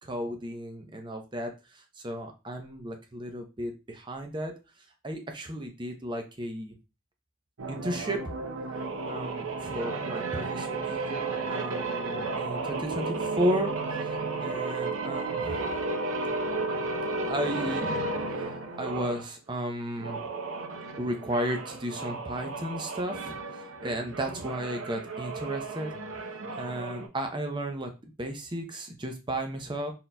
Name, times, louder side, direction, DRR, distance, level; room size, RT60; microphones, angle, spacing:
voice 1, 0.0-4.5 5.0-6.7 7.7-8.2 9.1-13.7 14.0-14.1 14.4-15.6 17.3-18.0 18.4-20.2 21.0-23.3 23.8-25.9 26.6-29.9, right 1 dB, 20° right, 4 dB, 0.6 m, -34 dB
sound 1, 7.6-19.3 19.9-27.1, right 3 dB, 75° right, 0.7 m, -33 dB
4.2 x 3.8 x 2.2 m, 0.29 s
head